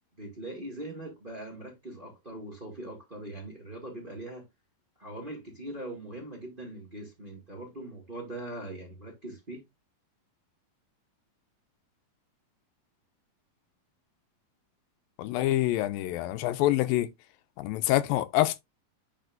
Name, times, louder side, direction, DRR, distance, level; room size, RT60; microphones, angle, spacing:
voice 1, 0.2-4.4 5.0-9.6, right 1 dB, 20° right, 1.5 m, -41 dB
voice 2, 15.2-17.1 17.6-18.6, left 15 dB, 90° left, 2.4 m, -26 dB
9.3 x 5.0 x 2.5 m
omnidirectional pair, 4.0 m